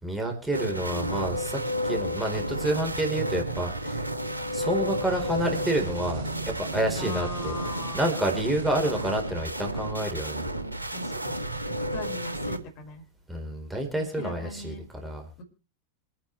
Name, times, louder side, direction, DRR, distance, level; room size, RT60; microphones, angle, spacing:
voice 1, 0.0-4.0 4.5-7.6 7.9-10.5 13.3-14.7 15.0-15.2, right 1 dB, 10° right, 2 dB, 4.2 m, -29 dB
sound 1, 0.5-12.6, equal, 85° right, 1.8 m, -32 dB
sound 2, 4.9-9.8, right 3 dB, 50° right, 3.6 m, -41 dB
voice 2, 7.0-8.2 10.9-13.0 14.2-14.9 15.4-15.5, left 1 dB, 40° left, 4 dB, 5.5 m, -38 dB
27.0 x 9.9 x 3.3 m, 0.34 s
figure-of-eight pair, 90°, 0 cm